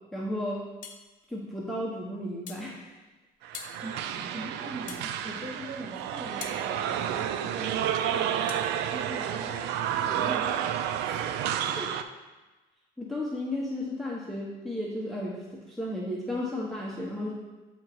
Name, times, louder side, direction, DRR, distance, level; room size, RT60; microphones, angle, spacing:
voice 1, 0.1-0.6 1.3-2.8 11.7-11.9 13.0-17.3, left 1 dB, ahead, -4 dB, 0.9 m, -33 dB
sound 1, 0.8-1.1 2.5-2.7 3.5-3.8 4.9-5.1 6.4-6.6 8.5-8.7, left 7 dB, 50° left, 0.7 m, -41 dB
sound 2, 3.4-12.0, right 9 dB, 90° right, 0.4 m, -30 dB
voice 2, 3.8-11.0 11.3-11.6, right 1 dB, 35° right, -3 dB, 2.0 m, -42 dB
8.6 x 2.9 x 4.6 m, 1.2 s
cardioid pair, 110°, 17 cm